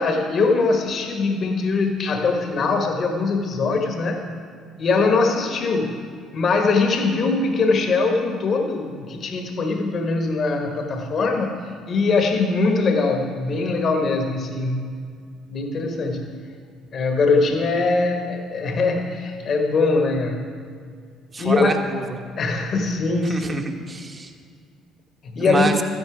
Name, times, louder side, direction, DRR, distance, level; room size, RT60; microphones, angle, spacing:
voice 1, 0.0-4.3 4.8-6.0 6.3-15.0 15.5-16.3 16.9-20.4 21.4-21.7 22.4-23.6 25.2-25.7, left 3 dB, 50° left, 4 dB, 1.4 m, -22 dB
voice 2, 21.3-22.2 23.2-24.3 25.4-25.8, right 3 dB, 35° right, 4 dB, 1.4 m, -26 dB
13.0 x 10.5 x 4.9 m, 2.2 s
hypercardioid pair, 60°, 0 cm